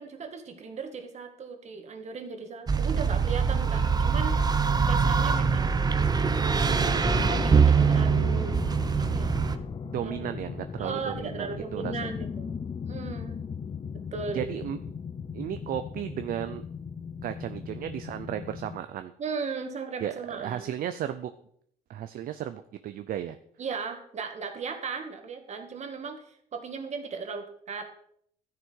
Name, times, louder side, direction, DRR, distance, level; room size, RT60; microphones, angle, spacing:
voice 1, 0.0-4.4 4.8-5.8 6.5-7.0 7.3-8.6 9.0-9.4 10.0-10.3 10.8-12.6 12.9-13.4 13.9-14.4 19.2-20.7 23.6-27.9, right 5 dB, 40° right, 5 dB, 2.0 m, -37 dB
sound 1, 2.7-9.6, right 5 dB, 25° right, 0.8 m, -23 dB
sound 2, 7.0-18.8, left 6 dB, 25° left, 0.6 m, -37 dB
voice 2, 9.9-12.1 14.3-14.8 15.3-16.6 17.2-19.1 20.0-21.3 21.9-23.4, right 10 dB, 60° right, 10 dB, 0.7 m, -34 dB
12.5 x 9.8 x 4.7 m, 0.66 s
cardioid pair, 110°, 17 cm